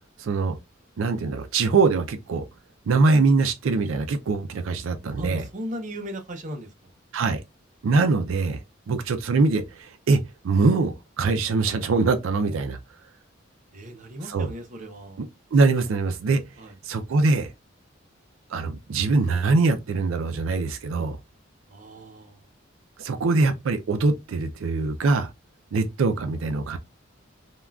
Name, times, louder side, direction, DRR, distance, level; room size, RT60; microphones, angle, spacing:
voice 1, 0.2-0.5 1.0-2.4 2.9-5.5 7.1-7.4 7.8-8.6 8.9-12.8 14.2-14.5 15.2-15.3 15.5-16.4 16.8-17.5 18.5-21.2 23.0-25.3 25.7-26.8, right 3 dB, 85° right, 0.4 m, -23 dB
voice 2, 5.2-6.7 13.7-15.2 16.6-16.7 21.7-22.4, equal, 40° right, 0.6 m, -37 dB
3.5 x 2.3 x 2.2 m
head